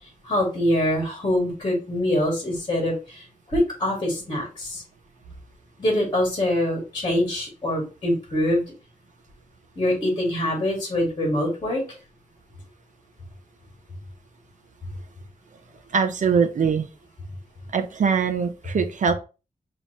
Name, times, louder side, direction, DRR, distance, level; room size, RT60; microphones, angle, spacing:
voice 1, 0.3-3.2 3.5-4.8 5.8-8.6 9.8-11.8, left 1 dB, 30° left, -1 dB, 2.1 m, -24 dB
voice 2, 15.9-16.9 17.7-19.1, right 6 dB, 60° right, 7 dB, 0.7 m, -22 dB
5.6 x 3.0 x 3.0 m, 0.31 s
wide cardioid pair, 170°, 15 cm